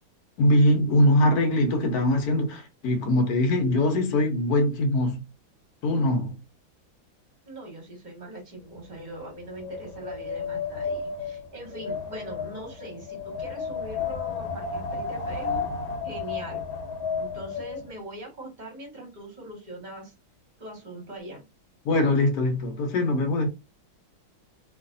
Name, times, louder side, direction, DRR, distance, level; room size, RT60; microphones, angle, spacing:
voice 1, 0.4-5.2 5.8-6.4 21.8-23.5, left 1 dB, 60° left, 1.1 m, -22 dB
voice 2, 7.4-15.7 16.0-16.6 17.1-20.1 20.6-21.4, right 1 dB, 30° right, 0.9 m, -41 dB
Wind, 8.7-17.9, left 5 dB, 85° left, 1.5 m, -33 dB
3.1 x 2.5 x 2.6 m
omnidirectional pair, 2.2 m